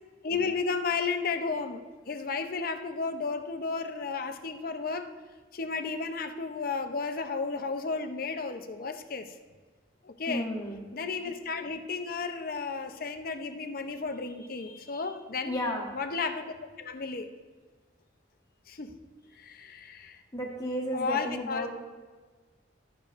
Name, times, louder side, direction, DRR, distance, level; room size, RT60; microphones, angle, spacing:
voice 1, 0.2-5.1 5.5-9.3 10.0-10.4 10.9-15.5 15.9-17.3 18.7-18.9 19.4-20.2 20.9-21.7, left 4 dB, 50° left, 7 dB, 0.6 m, -33 dB
voice 2, 10.3-10.9 14.5-15.1 15.5-16.0 20.3-21.7, equal, 20° left, -2 dB, 1.2 m, -34 dB
13.0 x 10.5 x 2.5 m, 1.4 s
head